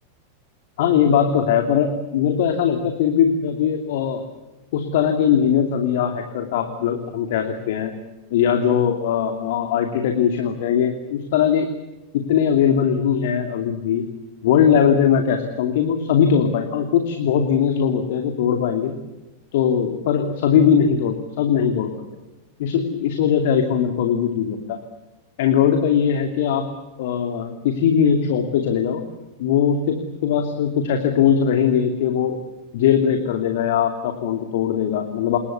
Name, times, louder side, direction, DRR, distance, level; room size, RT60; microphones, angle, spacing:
voice 1, 0.8-4.2 4.7-7.9 8.3-11.7 12.1-14.0 14.4-19.0 19.5-22.0 22.6-24.8 25.4-26.7 27.0-29.0 29.4-32.4 32.7-35.4, left 8 dB, 55° left, 6 dB, 2.7 m, -20 dB
28.0 x 22.5 x 8.3 m, 1.1 s
figure-of-eight pair, 90°, 0 cm